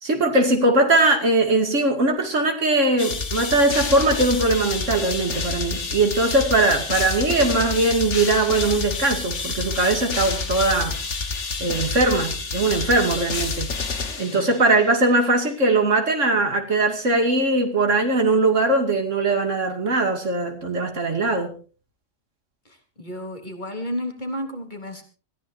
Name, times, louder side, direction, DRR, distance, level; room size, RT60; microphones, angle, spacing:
voice 1, 0.0-11.0 11.6-13.7 14.2-21.5, right 2 dB, 85° right, 4 dB, 2.8 m, -20 dB
sound 1, 3.0-14.9, left 4 dB, 70° left, 2.1 m, -28 dB
voice 2, 23.0-25.0, equal, 40° left, 5 dB, 3.8 m, -32 dB
26.0 x 15.5 x 2.7 m, 0.37 s
omnidirectional pair, 1.2 m